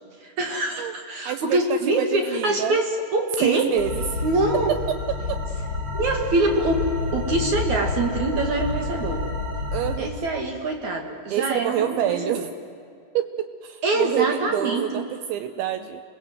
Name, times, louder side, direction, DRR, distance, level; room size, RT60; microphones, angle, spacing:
voice 1, 0.2-3.7 4.2-4.7 6.0-9.3 10.0-12.4 13.8-15.0, right 2 dB, 55° right, 3 dB, 2.1 m, -24 dB
voice 2, 1.3-2.8 3.4-4.2 4.7-4.8 5.3-5.4 9.7-10.1 11.3-12.5 13.1-16.0, right 11 dB, 80° right, 10 dB, 2.8 m, -27 dB
sound 1, 3.8-10.0, left 2 dB, 20° right, 2.9 m, -29 dB
29.5 x 22.0 x 7.7 m, 2.4 s
omnidirectional pair, 5.8 m